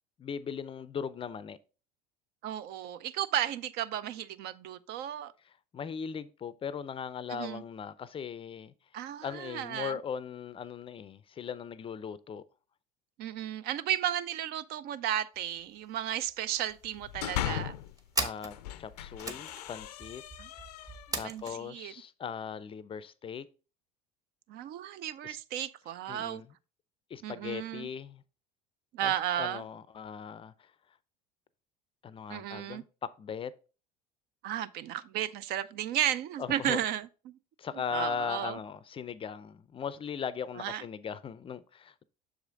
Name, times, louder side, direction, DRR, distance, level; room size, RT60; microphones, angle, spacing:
voice 1, 0.2-1.6 5.7-8.7 9.2-12.4 18.2-20.2 20.5-20.9 21.2-23.5 25.2-25.4 26.1-26.5 27.1-28.2 29.0-30.7 32.0-33.5 36.4-36.8 37.6-42.0, left 7 dB, 25° left, 0.4 m, -39 dB
voice 2, 2.4-5.3 7.3-7.6 8.9-10.0 13.2-17.8 20.4-20.5 21.2-21.9 24.5-26.4 27.2-27.9 28.9-29.6 32.3-32.8 34.4-37.4 37.9-38.6 40.6-40.8, right 11 dB, 55° right, 0.5 m, -34 dB
sound 1, 15.3-15.6 15.9-16.0 16.2-16.9 17.5-21.6, right 2 dB, 20° right, 1.1 m, -38 dB
sound 2, 16.8-17.9 18.4-21.3, left 11 dB, 85° left, 0.5 m, -38 dB
6.4 x 4.9 x 3.7 m
hypercardioid pair, 80°, 20 cm